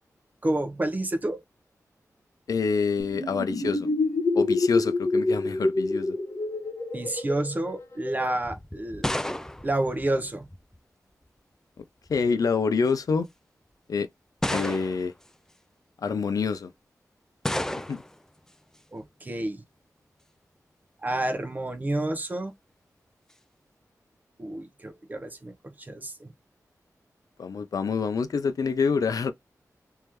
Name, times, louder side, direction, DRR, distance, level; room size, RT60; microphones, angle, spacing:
voice 1, 0.4-1.4 6.9-9.1 9.6-10.5 18.9-19.6 21.0-22.5 24.4-26.3, right 1 dB, 30° right, 1.0 m, -29 dB
voice 2, 2.5-3.9 4.3-6.2 12.1-13.3 13.9-14.1 14.5-15.1 16.0-16.7 17.9-18.0 27.4-29.3, left 5 dB, 75° left, 0.5 m, -26 dB
sound 1, 3.0-8.4, left 3 dB, 40° left, 1.2 m, -27 dB
sound 2, 8.4-10.8 11.8-12.3 13.1-13.2 14.4-15.2 17.4-18.2, left 1 dB, 10° left, 0.4 m, -32 dB
3.4 x 3.3 x 3.0 m
wide cardioid pair, 90°, 6 cm